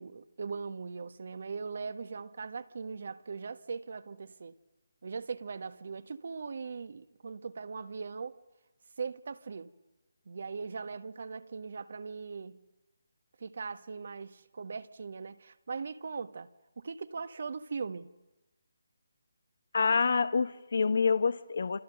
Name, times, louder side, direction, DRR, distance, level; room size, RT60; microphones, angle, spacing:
voice 1, 0.0-4.5 5.0-8.4 9.0-9.7 10.2-12.6 13.4-16.5 16.8-18.1, right 5 dB, 55° right, 1.5 m, -40 dB
voice 2, 19.7-21.8, left 5 dB, 60° left, 1.0 m, -27 dB
29.0 x 26.5 x 6.7 m
figure-of-eight pair, 150°, 0 cm